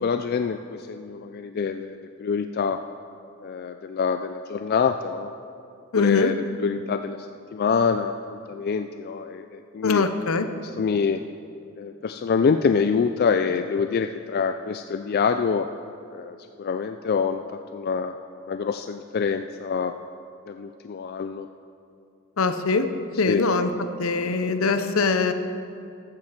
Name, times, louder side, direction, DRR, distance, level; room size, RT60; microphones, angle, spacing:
voice 1, 0.0-2.8 3.4-5.3 5.9-7.2 7.5-10.0 10.8-11.2 11.8-15.7 16.1-17.4 17.7-18.1 18.5-19.9 20.5-21.5 23.3-23.4, left 5 dB, 45° left, 8 dB, 0.3 m, -25 dB
voice 2, 5.9-6.3 9.8-10.5 22.4-22.9 23.2-23.7 24.0-25.3, left 3 dB, 70° left, 9 dB, 0.8 m, -22 dB
13.0 x 7.5 x 7.3 m, 2.6 s
head